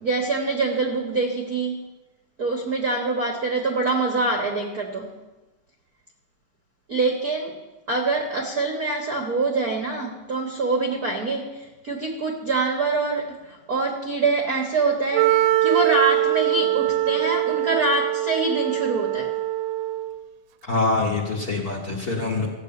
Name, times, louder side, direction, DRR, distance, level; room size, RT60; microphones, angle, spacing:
voice 1, 0.0-1.8 2.4-5.1 6.9-7.6 7.9-19.3, right 3 dB, 55° right, 1 dB, 1.0 m, -25 dB
Wind instrument woodwind instrument, 15.1-20.2, right 15 dB, 85° right, 2.1 m, -23 dB
voice 2, 20.6-22.5, left 3 dB, 40° left, 1 dB, 1.5 m, -24 dB
15.0 x 6.6 x 8.9 m, 1.1 s
omnidirectional pair, 3.6 m